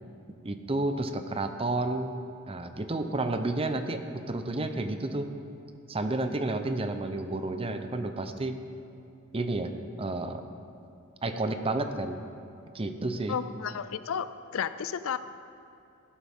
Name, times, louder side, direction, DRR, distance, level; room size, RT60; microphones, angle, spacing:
voice 1, 0.4-2.2 2.5-5.3 5.9-8.6 9.3-9.7 10.0-10.4 11.2-12.2 12.7-13.4, right 2 dB, 25° right, 8 dB, 0.6 m, -31 dB
voice 2, 13.3-14.3 14.5-15.2, left 7 dB, 70° left, 13 dB, 0.4 m, -32 dB
15.5 x 12.0 x 3.6 m, 2.7 s
head